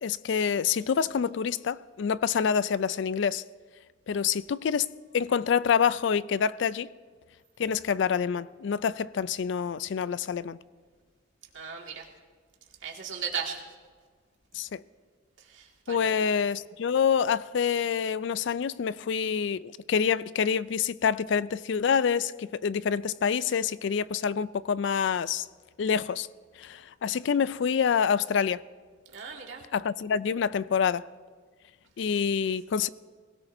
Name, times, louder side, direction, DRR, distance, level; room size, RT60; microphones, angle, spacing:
voice 1, 0.0-3.4 4.1-4.9 5.1-6.9 7.6-10.6 14.5-14.8 15.9-25.5 25.8-26.3 26.6-28.6 29.7-31.0 32.0-32.9, left 7 dB, 65° left, 0.4 m, -27 dB
voice 2, 11.5-12.0 12.8-13.6 15.5-16.1 29.1-29.6, right 6 dB, 75° right, 2.1 m, -36 dB
23.0 x 17.0 x 2.7 m
head